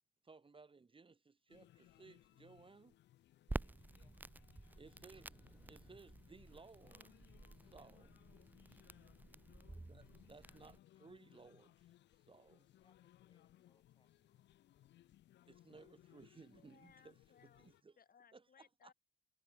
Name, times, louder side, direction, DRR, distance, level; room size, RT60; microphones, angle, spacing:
voice 1, 0.2-3.0 4.8-5.4 5.7-7.2 7.6-8.2 9.8-11.9 12.3-12.6 15.5-17.1 17.4-18.0 18.3-18.4 18.8-18.9, right 4 dB, 25° right, 1.5 m, -60 dB
sound 1, 1.5-17.8, left 13 dB, 65° left, 0.5 m, -66 dB
Crackle, 3.5-10.8, right 2 dB, 10° right, 0.4 m, -50 dB
voice 2, 3.9-4.3 9.1-9.4 12.3-14.5, left 3 dB, 25° left, 3.3 m, -79 dB
sound 2, 13.2-15.1, right 7 dB, 50° right, 7.9 m, -91 dB
voice 3, 16.5-18.9, left 7 dB, 50° left, 2.6 m, -67 dB
cardioid pair, 90°, 20 cm